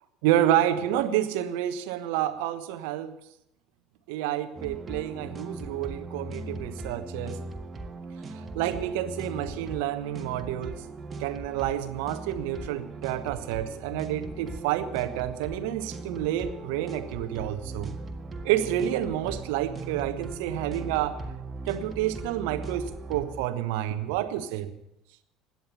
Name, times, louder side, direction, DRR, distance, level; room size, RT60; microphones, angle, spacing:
voice 1, 0.2-3.1 4.1-7.4 8.3-10.8 11.2-17.9 18.4-21.2 21.7-24.7, right 12 dB, 65° right, 11 dB, 1.2 m, -29 dB
sound 1, 4.6-23.5, right 3 dB, 30° right, 1.7 m, -39 dB
17.0 x 11.0 x 6.9 m, 0.82 s
figure-of-eight pair, 65°, 0 cm